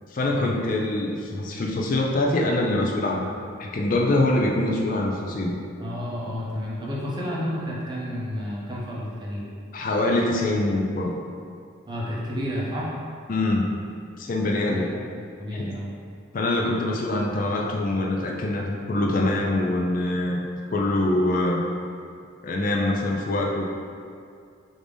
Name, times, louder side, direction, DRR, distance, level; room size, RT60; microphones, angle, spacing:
voice 1, 0.1-3.3 3.6-5.6 9.7-11.2 13.3-13.8 14.2-14.9 15.5-15.7 16.3-21.6 22.4-23.7, left 2 dB, 40° left, 0 dB, 0.4 m, -24 dB
voice 2, 5.8-9.5 11.9-12.9 14.4-14.9 15.4-15.9, equal, 20° right, -5 dB, 0.7 m, -31 dB
4.9 x 2.6 x 3.4 m, 2.3 s
head